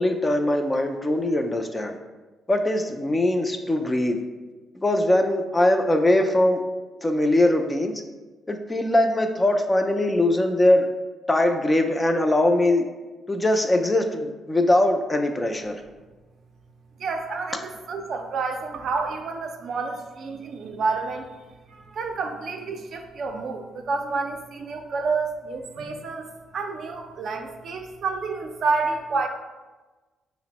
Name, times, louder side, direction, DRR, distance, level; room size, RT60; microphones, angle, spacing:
voice 1, 0.0-2.0 2.5-4.2 4.8-6.6 7.0-7.9 8.5-10.9 11.3-12.9 13.3-15.7, left 1 dB, 20° left, 5 dB, 0.3 m, -21 dB
voice 2, 17.0-21.3 21.7-26.3 26.5-29.3, right 4 dB, 60° right, 4 dB, 0.4 m, -29 dB
4.9 x 2.0 x 2.9 m, 1.2 s
cardioid pair, 90°, 0 cm